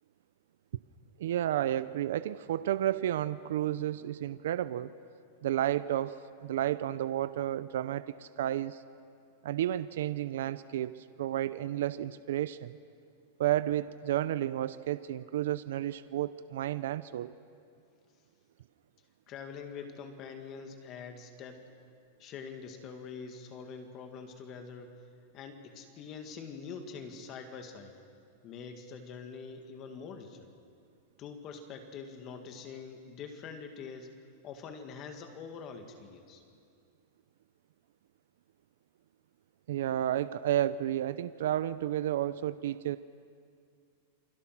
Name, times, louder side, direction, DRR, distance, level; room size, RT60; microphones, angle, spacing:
voice 1, 1.2-4.9 5.4-8.8 9.4-12.8 13.4-17.3 39.7-43.0, right 12 dB, 75° right, 14 dB, 0.6 m, -31 dB
voice 2, 19.3-21.6 22.2-24.9 25.3-27.9 28.4-30.5 31.2-34.1 34.4-36.4, left 5 dB, 30° left, 6 dB, 2.2 m, -44 dB
28.5 x 23.5 x 6.1 m, 2.3 s
supercardioid pair, 155°, 0 cm